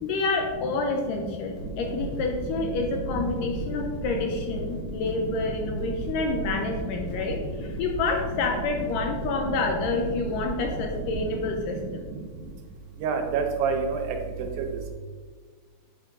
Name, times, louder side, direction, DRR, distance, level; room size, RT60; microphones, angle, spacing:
voice 1, 0.0-12.1, left 3 dB, 80° left, 3 dB, 1.9 m, -28 dB
sound 1, 1.5-11.5, right 1 dB, 50° left, 1.6 m, -35 dB
voice 2, 13.0-14.2 14.6-14.7, right 5 dB, 80° right, 4 dB, 2.6 m, -26 dB
8.7 x 4.4 x 3.6 m, 1.5 s
omnidirectional pair, 4.3 m